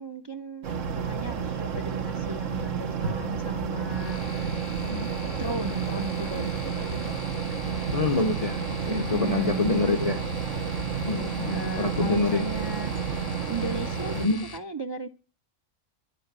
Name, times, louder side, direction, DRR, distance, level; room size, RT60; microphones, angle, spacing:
voice 1, 0.0-4.7 5.4-7.2 8.9-9.9 11.5-14.3 14.5-15.1, right 2 dB, 30° right, 0.5 m, -35 dB
sound 1, 0.6-14.3, right 6 dB, 85° right, 1.5 m, -31 dB
sound 2, 3.9-14.6, left 3 dB, 70° left, 1.7 m, -42 dB
voice 2, 4.8-5.1 7.9-10.2 11.0-12.5 14.1-14.5, left 3 dB, 35° left, 0.7 m, -26 dB
11.0 x 8.6 x 8.0 m
omnidirectional pair, 1.3 m